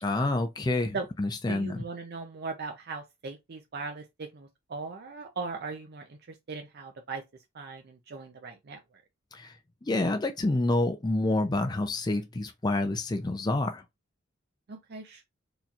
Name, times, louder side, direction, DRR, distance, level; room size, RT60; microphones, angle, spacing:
voice 1, 0.0-1.8 9.3-9.5 9.8-13.8, left 2 dB, 20° left, 0.4 m, -28 dB
voice 2, 1.5-6.2 6.5-7.2 7.5-8.8 14.7-15.2, right 4 dB, 50° right, 0.5 m, -39 dB
4.2 x 2.8 x 2.4 m
head